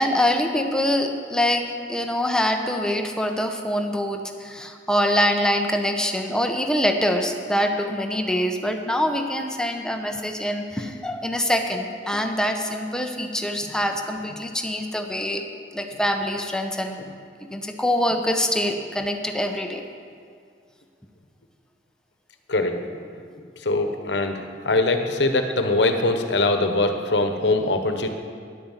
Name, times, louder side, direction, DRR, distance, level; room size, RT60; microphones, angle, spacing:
voice 1, 0.0-17.0 17.5-19.8, equal, 5° left, 4 dB, 0.9 m, -24 dB
voice 2, 22.5-22.8 23.6-28.1, left 2 dB, 85° left, 6 dB, 1.1 m, -22 dB
10.5 x 9.3 x 7.4 m, 2.2 s
head